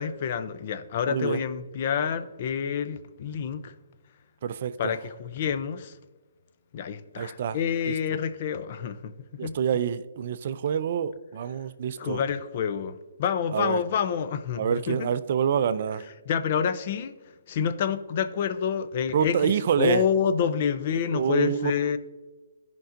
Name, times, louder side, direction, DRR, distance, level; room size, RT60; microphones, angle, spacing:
voice 1, 0.0-3.7 4.8-5.9 6.7-9.6 12.0-15.1 16.3-17.1 17.5-22.0, left 7 dB, 50° left, 0.5 m, -28 dB
voice 2, 1.1-1.4 4.4-4.7 7.2-7.6 9.4-12.2 13.5-13.8 14.6-16.0 19.1-20.0 21.1-21.7, right 8 dB, 55° right, 0.4 m, -26 dB
14.5 x 5.3 x 2.5 m
hypercardioid pair, 135°, 0 cm